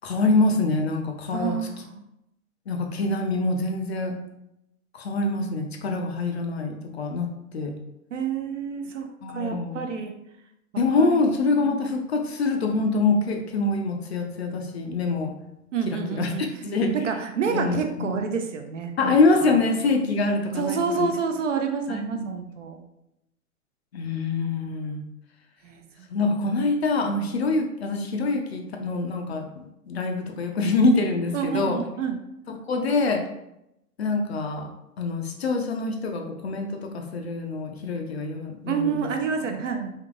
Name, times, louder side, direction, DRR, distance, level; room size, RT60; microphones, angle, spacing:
voice 1, 0.0-1.5 2.7-4.1 4.9-7.7 9.2-9.8 10.8-15.3 15.9-17.0 17.5-18.2 19.0-21.1 21.9-22.0 23.9-25.0 26.1-31.8 32.7-33.2 34.0-34.7 35.0-39.1 39.4-39.6, left 3 dB, 45° left, 3 dB, 0.4 m, -25 dB
voice 2, 1.3-2.0 8.1-10.1 11.0-11.2 11.7-11.8 15.7-19.1 19.5-19.6 20.5-22.8 25.6-25.8 31.3-32.2 38.7-39.9, right 6 dB, 55° right, 4 dB, 0.5 m, -28 dB
3.4 x 2.7 x 2.4 m, 0.85 s
figure-of-eight pair, 115°, 46 cm